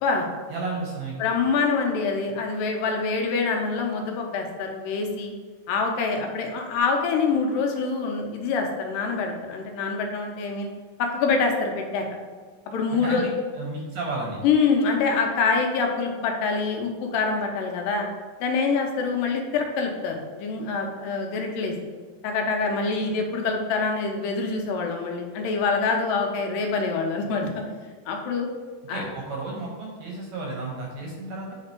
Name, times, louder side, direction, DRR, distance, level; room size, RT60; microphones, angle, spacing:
voice 1, 0.5-1.2 12.9-13.3 13.6-14.4 28.9-31.5, right 3 dB, 70° right, -2 dB, 1.8 m, -32 dB
voice 2, 1.2-5.3 5.7-10.7 11.0-12.1 12.7-13.3 14.4-18.1 18.4-21.8 22.2-27.5 28.1-28.5 28.9-29.1, left 4 dB, 90° left, 2 dB, 2.4 m, -25 dB
6.8 x 3.4 x 4.3 m, 1.5 s
omnidirectional pair, 3.8 m